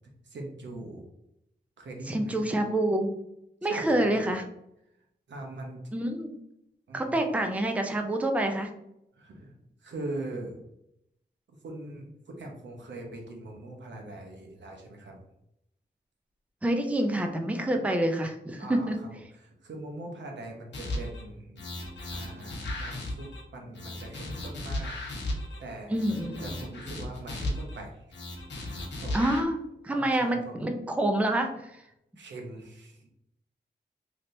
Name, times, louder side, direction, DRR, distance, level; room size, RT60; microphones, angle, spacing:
voice 1, 0.2-1.1 1.8-2.4 3.6-4.3 5.3-5.9 6.9-7.2 9.2-9.5 9.8-10.6 11.6-15.2 18.6-18.9 19.3-21.6 22.1-24.9 25.6-25.9 26.4-28.0 28.6-28.7 29.0-29.2 29.9-30.6 32.2-33.1, right 2 dB, 85° right, 1 dB, 0.8 m, -41 dB
voice 2, 2.1-3.1 3.6-4.4 5.9-6.4 6.9-8.7 16.6-19.0 25.9-26.6 29.1-31.8, right 1 dB, 5° right, 4 dB, 0.4 m, -27 dB
sound 1, 20.7-21.2 21.6-23.4 23.7-25.6 25.9-27.8 28.1-29.4, left 1 dB, 85° left, 0.9 m, -36 dB
3.2 x 2.8 x 2.6 m, 0.80 s
wide cardioid pair, 85°, 18 cm